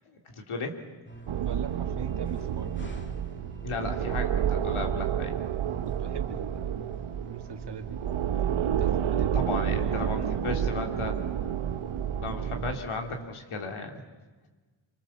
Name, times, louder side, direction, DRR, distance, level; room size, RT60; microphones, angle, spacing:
voice 1, 0.2-0.8 3.6-5.4 9.3-11.1 12.2-14.0, left 3 dB, 80° left, 3 dB, 3.2 m, -35 dB
sound 1, 1.1-13.2, right 3 dB, 25° left, 2.3 m, -45 dB
sound 2, 1.3-12.8, right 9 dB, 80° right, 1.0 m, -30 dB
voice 2, 1.4-2.7 5.9-7.0 7.3-8.0 8.8-9.5 9.8-11.3, right 5 dB, 55° right, 5 dB, 2.1 m, -40 dB
27.0 x 25.0 x 7.2 m, 1.3 s
wide cardioid pair, 165°, 49 cm